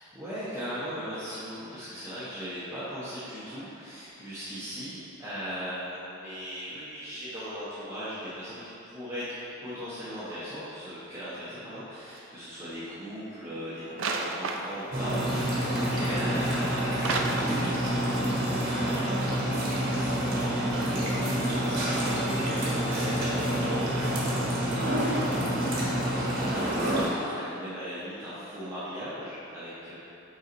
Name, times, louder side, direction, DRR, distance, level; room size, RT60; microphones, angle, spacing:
voice 1, 0.0-8.6 8.9-9.3 9.6-26.8 27.1-30.0, equal, 15° right, -12 dB, 1.0 m, -39 dB
sound 1, 12.1-12.3 14.0-15.0 17.0-18.0 18.2-18.3, right 3 dB, 70° right, 0.4 m, -32 dB
sound 2, 14.9-27.1, right 1 dB, 50° right, 1.1 m, -28 dB
5.5 x 4.0 x 4.6 m, 2.8 s
head